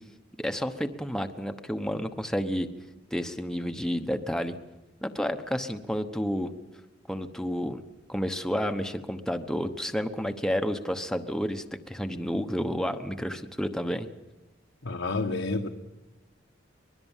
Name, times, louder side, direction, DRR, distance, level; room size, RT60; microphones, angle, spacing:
voice 1, 0.4-2.7 3.1-4.5 5.0-6.5 7.1-7.8 8.1-14.1, equal, 5° left, 6 dB, 1.0 m, -30 dB
voice 2, 14.8-15.7, left 3 dB, 80° left, 2 dB, 1.4 m, -29 dB
24.5 x 21.0 x 7.4 m, 1.0 s
head